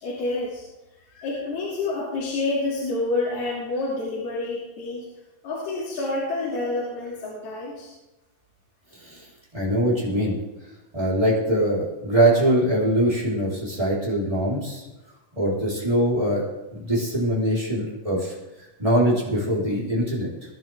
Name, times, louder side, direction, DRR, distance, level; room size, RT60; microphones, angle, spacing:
voice 1, 0.0-0.6 1.1-5.1 5.4-7.9, left 2 dB, 75° left, -6 dB, 4.8 m, -28 dB
voice 2, 9.5-10.4 10.9-14.8 15.4-16.5 16.7-18.3 18.8-20.3, right 1 dB, 10° right, -6 dB, 4.0 m, -22 dB
23.5 x 11.0 x 3.7 m, 1.0 s
omnidirectional pair, 4.5 m